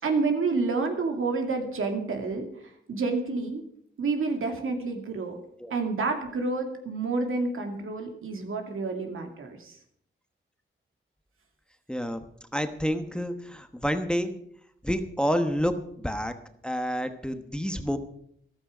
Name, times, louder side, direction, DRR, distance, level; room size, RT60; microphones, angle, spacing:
voice 1, 0.0-3.6 4.0-5.4 5.7-9.8, right 3 dB, 85° right, 4 dB, 2.4 m, -29 dB
voice 2, 11.9-12.2 12.5-14.3 14.8-16.3 16.6-18.0, equal, 5° left, 8 dB, 1.1 m, -29 dB
14.0 x 13.0 x 5.0 m, 0.68 s
wide cardioid pair, 115°, 21 cm